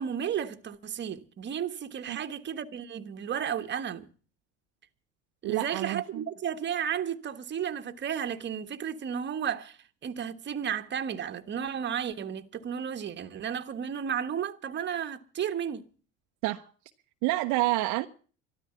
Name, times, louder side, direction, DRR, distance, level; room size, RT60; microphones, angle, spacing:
voice 1, 0.0-4.1 5.4-15.9, right 8 dB, 30° right, 1.3 m, -33 dB
voice 2, 5.4-6.2 16.4-16.7 17.2-18.1, right 18 dB, 60° right, 0.9 m, -28 dB
13.0 x 12.5 x 6.9 m
supercardioid pair, 95°, 34 cm